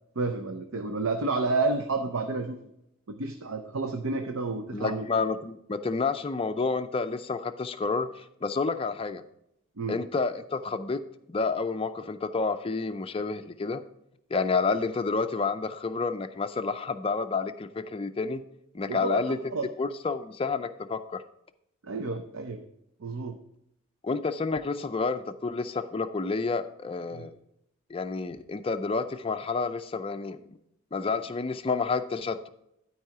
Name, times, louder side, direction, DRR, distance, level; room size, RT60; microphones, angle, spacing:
voice 1, 0.2-2.6 3.2-5.1 9.8-10.0 18.9-19.6 21.8-22.6 23.0-23.4 27.1-27.3, right 3 dB, 65° right, 6 dB, 0.6 m, -30 dB
voice 2, 4.7-9.2 9.9-11.0 11.3-13.8 14.3-18.4 18.7-19.4 19.8-21.2 24.0-27.3 27.9-30.4 30.9-32.5, left 4 dB, 25° left, 8 dB, 0.4 m, -29 dB
12.0 x 4.8 x 4.7 m, 0.80 s
head